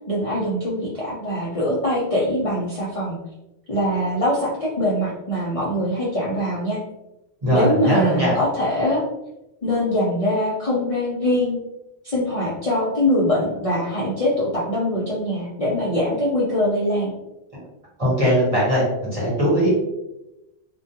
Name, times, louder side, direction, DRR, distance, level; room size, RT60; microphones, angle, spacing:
voice 1, 0.1-3.2 3.7-6.8 7.5-9.0 9.6-11.6 12.0-17.1, left 1 dB, 45° left, -7 dB, 0.5 m, -23 dB
voice 2, 7.4-8.3 18.0-19.7, equal, 35° right, -7 dB, 1.0 m, -20 dB
2.2 x 2.2 x 2.7 m, 0.93 s
omnidirectional pair, 1.1 m